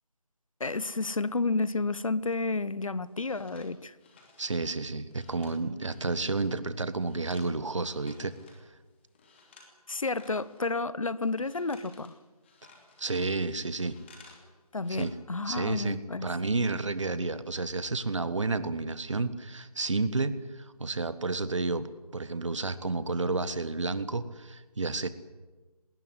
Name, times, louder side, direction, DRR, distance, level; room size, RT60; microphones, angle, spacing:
voice 1, 0.6-3.9 9.9-12.1 14.7-16.3, left 3 dB, 55° left, 1.1 m, -31 dB
sound 1, 2.7-6.6 6.8-8.7 9.0-9.7 10.0-14.5 14.7-15.0, left 4 dB, 20° left, 2.7 m, -57 dB
voice 2, 4.4-8.3 13.0-14.0 14.9-15.1 15.5-25.1, right 3 dB, 50° right, 1.5 m, -31 dB
19.5 x 19.5 x 9.8 m
figure-of-eight pair, 165°, 20 cm